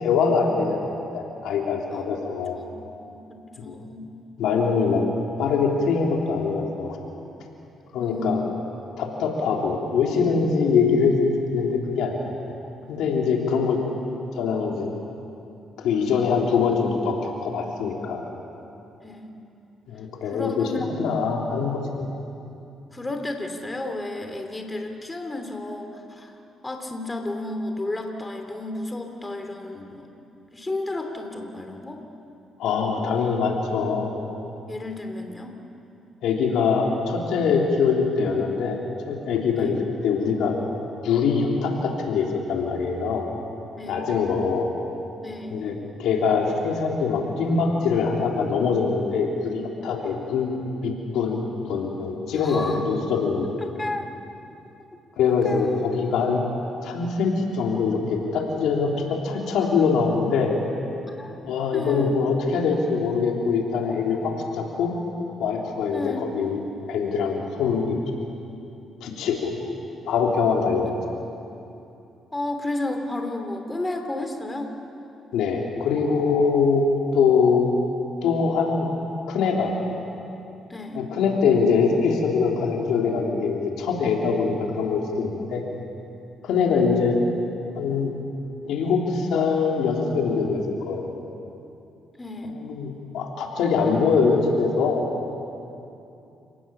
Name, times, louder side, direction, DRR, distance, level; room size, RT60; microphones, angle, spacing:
voice 1, 0.0-2.6 3.6-3.7 4.4-5.0 5.4-7.0 7.9-8.4 9.0-12.3 12.9-13.8 14.3-14.9 15.8-18.2 19.9-20.7 21.0-21.9 32.6-34.2 36.2-38.8 39.1-39.8 40.0-40.5 41.0-43.3 43.9-44.7 45.5-50.5 50.8-51.4 51.7-53.5 55.2-56.4 56.8-60.5 61.4-64.9 65.4-66.6 66.9-68.0 69.0-69.5 70.1-70.9 75.3-77.7 78.2-78.9 79.3-79.7 80.9-85.6 86.4-87.2 87.8-88.1 88.6-91.0 92.5-95.0, left 5 dB, 85° left, 0 dB, 3.5 m, -23 dB
voice 2, 3.0-4.1 8.0-8.5 19.0-19.3 20.3-21.0 22.9-26.3 26.6-30.1 30.5-32.0 34.7-35.6 39.6-39.7 43.8-44.1 45.2-45.8 52.4-52.8 53.6-54.1 55.4-55.9 61.1-61.4 61.7-62.2 65.9-66.3 72.3-74.8 80.7-81.0 92.2-92.6, left 2 dB, 15° left, 4 dB, 2.8 m, -32 dB
29.5 x 19.0 x 7.2 m, 2.7 s
cardioid pair, 90°, 0 cm